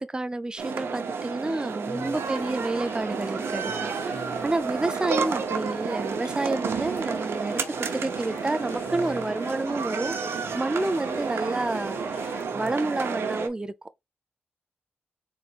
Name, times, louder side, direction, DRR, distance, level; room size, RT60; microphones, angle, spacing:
voice 1, 0.0-4.1 4.4-7.6 7.9-13.7, right 2 dB, 20° right, 0.5 m, -29 dB
sound 1, 0.6-13.5, right 5 dB, 80° right, 0.7 m, -31 dB
voice 2, 1.8-2.2 3.6-4.5 8.9-9.4 10.4-10.6 12.5-12.7, left 1 dB, 10° left, 1.6 m, -44 dB
sound 2, 2.0-12.4, left 4 dB, 80° left, 1.1 m, -45 dB
4.2 x 4.2 x 2.5 m
cardioid pair, 80°, 4 cm